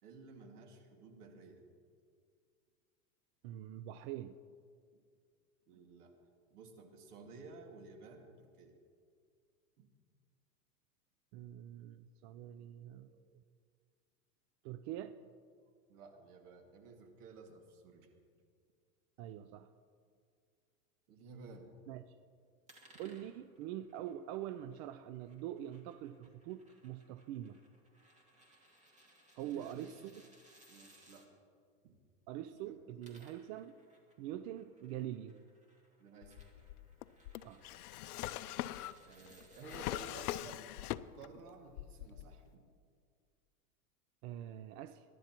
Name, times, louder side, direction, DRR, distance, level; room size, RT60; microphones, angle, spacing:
voice 1, 0.0-1.6 5.7-6.1 6.5-8.8 9.8-9.9 15.9-18.1 21.1-21.7 29.4-30.0 30.7-31.3 31.8-31.9 32.6-32.8 36.0-36.4 39.0-40.6 41.1-42.6, right 4 dB, 75° right, 3 dB, 2.1 m, -54 dB
voice 2, 3.4-4.3 11.3-13.4 14.6-15.2 19.2-19.7 21.9-22.0 23.0-27.6 29.4-30.1 32.3-33.7 34.2-35.4 37.4-37.6 44.2-45.0, right 12 dB, 50° right, 11 dB, 0.5 m, -44 dB
sound 1, 22.7-31.3 32.8-40.4, right 1 dB, 15° right, 2.3 m, -65 dB
Drawer open or close, 36.2-41.4 41.7-42.5, left 14 dB, 70° left, 0.6 m, -42 dB
22.0 x 11.0 x 3.0 m, 2.1 s
hypercardioid pair, 120°, 46 cm